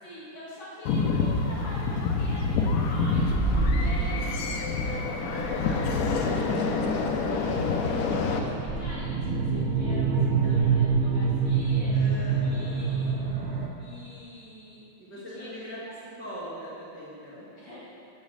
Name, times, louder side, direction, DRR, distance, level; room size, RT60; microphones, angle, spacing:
voice 1, 0.0-3.2 3.7-6.5 7.2-11.9 12.4-13.1 13.8-14.8 15.3-15.9 17.6-17.8, equal, 55° left, -9 dB, 2.5 m, -45 dB
sound 1, 0.9-8.4, left 4 dB, 90° left, 0.7 m, -27 dB
sound 2, 2.9-13.7, right 4 dB, 65° right, 0.6 m, -27 dB
voice 2, 11.9-13.2 15.0-15.8 16.2-17.5, equal, 5° right, -10 dB, 1.6 m, -41 dB
7.2 x 4.0 x 6.3 m, 2.8 s
omnidirectional pair, 2.2 m